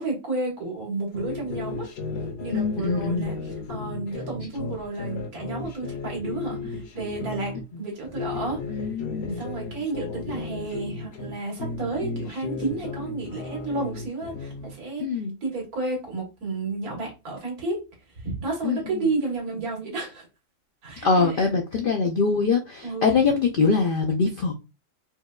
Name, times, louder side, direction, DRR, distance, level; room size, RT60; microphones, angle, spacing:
voice 1, 0.0-1.9 2.4-8.6 9.3-15.1 15.4-17.8 18.2-20.3 20.8-21.5 22.8-23.2, right 3 dB, 90° right, 1.9 m, -31 dB
sound 1, 1.1-7.6 8.0-11.3 11.6-14.7, left 4 dB, 55° left, 0.8 m, -34 dB
voice 2, 2.5-3.3 8.7-9.4 15.0-15.3 18.6-19.0 21.0-24.5, left 4 dB, 80° left, 0.4 m, -23 dB
4.5 x 2.2 x 2.3 m
omnidirectional pair, 1.5 m